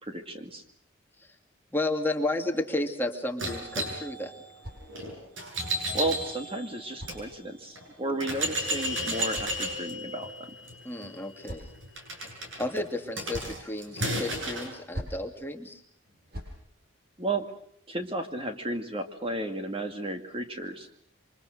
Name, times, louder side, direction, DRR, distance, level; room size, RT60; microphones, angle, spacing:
voice 1, 0.0-0.6 5.9-10.5 17.2-17.5 17.9-20.9, right 1 dB, 25° right, 6 dB, 2.0 m, -33 dB
voice 2, 1.7-4.3 10.8-11.7 12.6-15.8, left 2 dB, 10° left, 4 dB, 2.3 m, -32 dB
sound 1, 3.4-7.2 7.8-7.9 8.2-14.7, right 1 dB, 65° right, 7.8 m, -34 dB
sound 2, 4.2-5.4 6.4-7.8 8.8-10.1 11.0-12.0 12.9-13.7 14.7-15.3 16.0-16.6, equal, 45° right, 6.7 m, -45 dB
28.0 x 25.5 x 6.5 m, 0.66 s
head